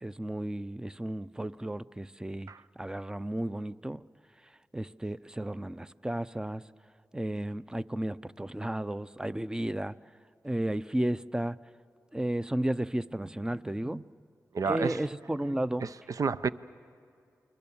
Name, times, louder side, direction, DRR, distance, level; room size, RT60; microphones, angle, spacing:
voice 1, 0.0-4.0 4.7-6.6 7.1-10.0 10.4-11.6 12.1-14.1 14.7-15.8, right 1 dB, 10° right, 15 dB, 0.6 m, -33 dB
voice 2, 14.5-15.0 15.8-16.5, right 5 dB, 65° right, 14 dB, 0.6 m, -30 dB
29.0 x 22.5 x 7.2 m, 2.4 s
cardioid pair, 50°, 6 cm